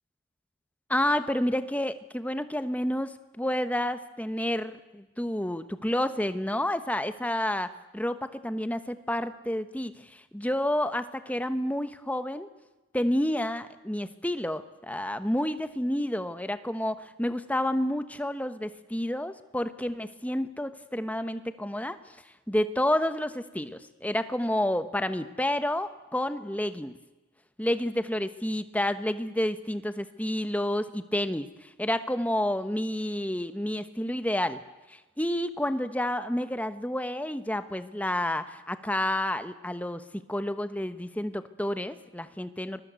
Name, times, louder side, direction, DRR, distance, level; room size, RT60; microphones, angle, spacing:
voice 1, 0.9-12.5 12.9-22.2 22.5-26.9 27.6-34.6 34.9-40.0 40.3-42.8, left 1 dB, 5° left, 11 dB, 1.0 m, -30 dB
24.5 x 21.0 x 8.1 m, 1.1 s
head